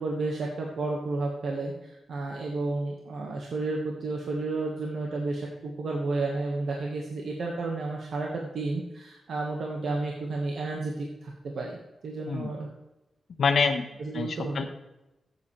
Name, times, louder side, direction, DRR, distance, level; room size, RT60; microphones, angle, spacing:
voice 1, 0.0-11.8 12.0-12.7 14.0-14.7, right 3 dB, 65° right, -1 dB, 1.6 m, -32 dB
voice 2, 13.4-13.9 14.1-14.7, left 5 dB, 60° left, 5 dB, 1.2 m, -26 dB
14.5 x 8.4 x 3.4 m, 0.95 s
wide cardioid pair, 140°, 0 cm